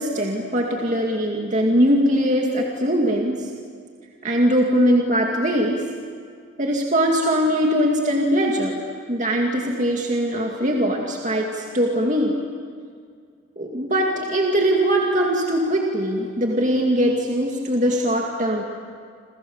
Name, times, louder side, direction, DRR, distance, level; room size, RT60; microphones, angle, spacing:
voice 1, 0.0-3.5 4.2-5.8 6.6-8.8 9.1-12.4 13.6-18.6, equal, 35° right, 0 dB, 2.4 m, -21 dB
28.5 x 27.5 x 7.3 m, 2.1 s
head